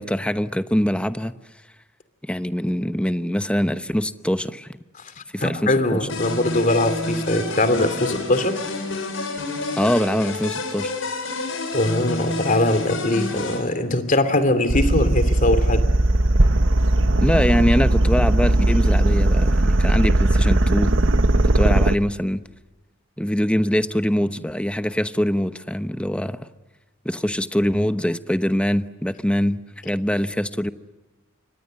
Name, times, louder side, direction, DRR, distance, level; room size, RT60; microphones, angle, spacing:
voice 1, 0.0-1.4 2.2-4.7 5.3-6.0 9.8-10.9 17.2-20.9 21.4-22.4 23.2-26.5 27.0-29.6 29.8-30.7, equal, 5° left, 11 dB, 1.0 m, -23 dB
voice 2, 5.0-8.5 11.7-15.9, left 1 dB, 40° left, 11 dB, 2.8 m, -21 dB
sound 1, 6.1-13.6, left 2 dB, 70° left, 7.1 m, -29 dB
sound 2, 14.7-22.0, right 1 dB, 70° right, 1.2 m, -18 dB
29.0 x 24.5 x 7.7 m, 1.2 s
head